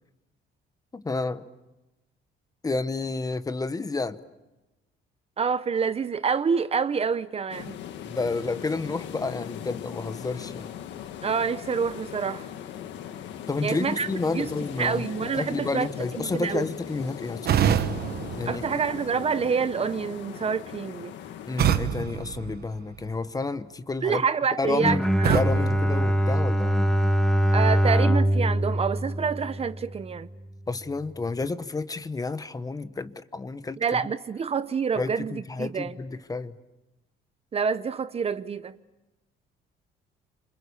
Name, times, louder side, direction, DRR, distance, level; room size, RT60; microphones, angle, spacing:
voice 1, 0.9-1.5 2.6-4.2 8.1-10.7 13.5-15.1 15.4-18.0 18.4-18.6 21.5-24.2 24.6-26.9 30.7-34.1 35.0-36.6, left 3 dB, 20° left, 1.0 m, -30 dB
voice 2, 5.4-7.8 11.2-12.5 13.6-14.5 14.8-15.9 16.2-16.7 18.5-21.1 24.0-25.4 27.5-30.3 33.8-35.9 37.5-38.7, right 6 dB, 35° right, 0.8 m, -27 dB
sound 1, 7.5-21.8, left 10 dB, 80° left, 1.7 m, -39 dB
sound 2, 17.5-19.4 21.6-23.3 25.2-26.9, right 10 dB, 60° right, 1.2 m, -28 dB
Bowed string instrument, 24.7-30.0, equal, ahead, 1.8 m, -23 dB
28.5 x 26.5 x 7.1 m
cardioid pair, 115°, 18 cm